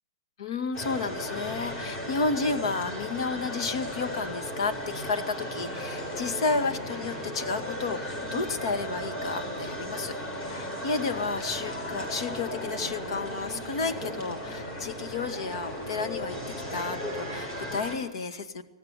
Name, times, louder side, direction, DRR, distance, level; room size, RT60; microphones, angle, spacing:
voice 1, 0.4-16.4 16.7-18.6, left 4 dB, 65° left, 7 dB, 2.1 m, -32 dB
sound 1, 0.7-18.0, equal, 25° left, 7.6 m, -36 dB
19.5 x 14.5 x 9.9 m, 1.1 s
hypercardioid pair, 140°, 3 cm